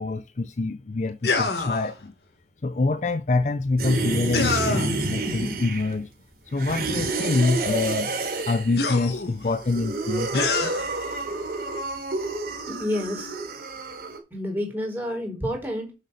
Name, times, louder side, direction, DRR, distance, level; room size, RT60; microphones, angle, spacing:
voice 1, 0.0-2.1 2.6-6.1 6.5-8.1 8.4-10.7, left 3 dB, 40° left, 0.5 m, -26 dB
sound 1, 1.2-1.9 4.3-5.0 7.1-7.2 8.8-9.5 10.3-10.9, left 4 dB, 70° left, 1.7 m, -26 dB
sound 2, 3.8-6.0 6.5-8.8 9.4-14.2, right 3 dB, 60° right, 3.2 m, -29 dB
voice 2, 12.7-13.3 14.3-15.9, left 1 dB, 10° right, 3.9 m, -29 dB
6.6 x 6.6 x 6.7 m
head